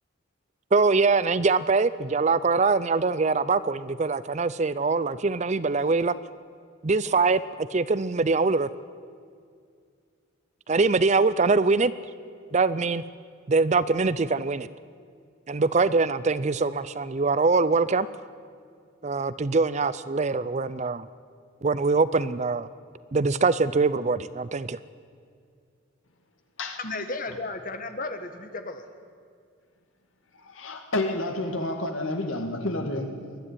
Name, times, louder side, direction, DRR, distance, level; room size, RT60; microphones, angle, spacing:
voice 1, 0.7-6.1 6.8-8.7 10.7-11.9 12.5-13.0 13.5-14.7 15.5-18.1 19.0-21.1 21.6-22.7 23.1-24.8, right 4 dB, 35° right, 0.4 m, -23 dB
voice 2, 26.8-28.8, left 3 dB, 40° left, 1.4 m, -34 dB
voice 3, 30.4-33.4, left 2 dB, 70° left, 2.2 m, -30 dB
21.0 x 12.5 x 9.8 m
head